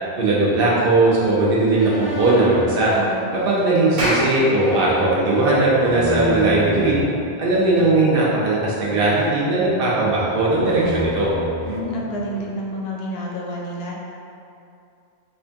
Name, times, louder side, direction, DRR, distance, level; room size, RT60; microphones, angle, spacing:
voice 1, 0.2-2.9 3.4-7.0 7.4-11.3, right 2 dB, 60° right, -6 dB, 1.0 m, -18 dB
sound 1, 1.8-7.0 7.7-8.2 8.8-10.3 10.6-12.6, equal, 20° right, 0.7 m, -31 dB
voice 2, 2.9-3.3 11.6-13.9, equal, 70° left, -2 dB, 0.9 m, -29 dB
Clapping, 4.0-8.6, equal, 85° right, 1.2 m, -30 dB
3.4 x 2.6 x 3.4 m, 2.5 s
omnidirectional pair, 1.1 m